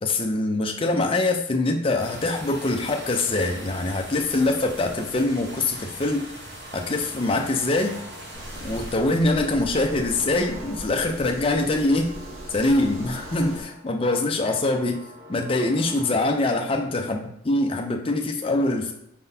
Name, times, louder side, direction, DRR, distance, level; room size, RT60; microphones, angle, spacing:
voice 1, 0.0-6.2 6.7-8.0 8.6-12.1 12.5-15.0 15.3-17.2 17.5-18.9, left 2 dB, 25° left, 3 dB, 0.4 m, -24 dB
sound 1, 2.0-9.0, right 1 dB, 50° right, 1.1 m, -40 dB
sound 2, 6.2-8.5 8.9-11.2 11.6-13.9 14.3-16.7, equal, 20° right, 1.2 m, -46 dB
sound 3, 8.3-13.6, equal, 90° right, 1.2 m, -39 dB
4.5 x 3.8 x 2.7 m, 0.80 s
head